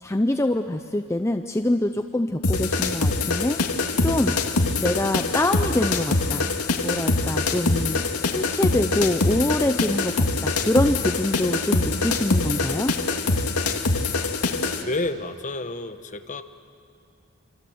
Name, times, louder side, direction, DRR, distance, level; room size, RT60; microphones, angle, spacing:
voice 1, 0.0-3.6 4.0-4.4 4.8-6.5 6.8-12.9, left 1 dB, 10° left, 6 dB, 0.6 m, -25 dB
sound 1, 2.4-14.8, left 3 dB, 85° left, 2.0 m, -24 dB
voice 2, 14.8-16.4, left 2 dB, 35° left, 9 dB, 1.1 m, -30 dB
26.5 x 25.5 x 7.9 m, 2.4 s
head